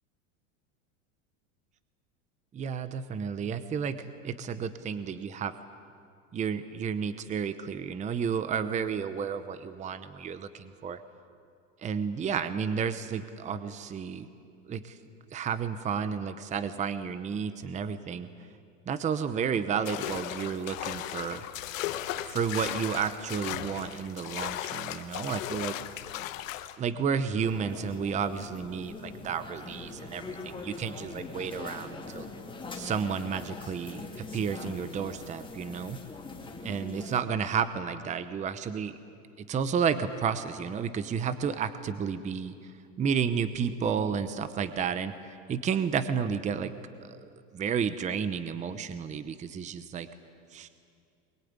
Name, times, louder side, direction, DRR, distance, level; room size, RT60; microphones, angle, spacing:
voice 1, 2.5-5.5 6.3-11.0 11.8-14.3 14.6-15.0 15.3-18.3 18.9-21.4 22.3-25.7 26.8-32.3 32.7-36.0 36.6-39.0 39.4-42.7 43.0-46.7 47.0-50.1 50.5-50.7, right 7 dB, 20° right, 12 dB, 0.8 m, -32 dB
sound 1, 19.9-26.8, left 13 dB, 85° left, 1.4 m, -36 dB
sound 2, 27.4-37.2, left 3 dB, 10° left, 2.8 m, -42 dB
22.5 x 21.5 x 9.6 m, 2.3 s
supercardioid pair, 140°, 38 cm